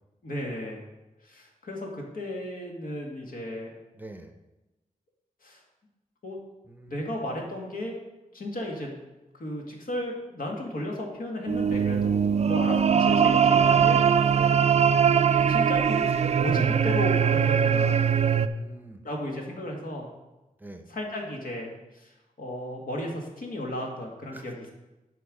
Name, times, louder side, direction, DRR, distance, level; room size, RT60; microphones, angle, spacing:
voice 1, 0.2-0.8 1.2-3.7 5.4-5.6 6.2-6.4 6.9-8.0 8.3-9.0 9.4-14.4 15.3-16.1 16.4-18.0 19.0-20.1 20.9-24.7, left 1 dB, 75° left, 0 dB, 1.9 m, -34 dB
voice 2, 3.9-4.3 6.7-7.1 14.3-14.6 18.4-19.0 20.6-20.9 24.3-24.7, right 2 dB, 10° right, 6 dB, 0.7 m, -45 dB
sound 1, 11.5-18.5, right 7 dB, 50° right, 0.4 m, -21 dB
11.5 x 4.7 x 4.9 m, 1.0 s
wide cardioid pair, 140°, 15 cm